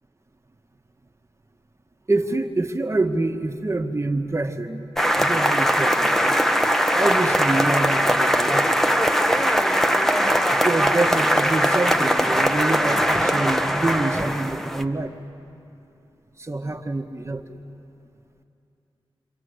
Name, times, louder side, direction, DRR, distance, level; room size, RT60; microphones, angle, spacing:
voice 1, 2.1-4.8 5.2-6.4 6.9-8.8 10.5-15.2 16.4-17.6, right 2 dB, 30° right, 4 dB, 1.6 m, -26 dB
sound 1, 5.0-14.8, equal, 5° left, 1.3 m, -20 dB
27.5 x 25.5 x 8.1 m, 2.7 s
cardioid pair, 45°, 10 cm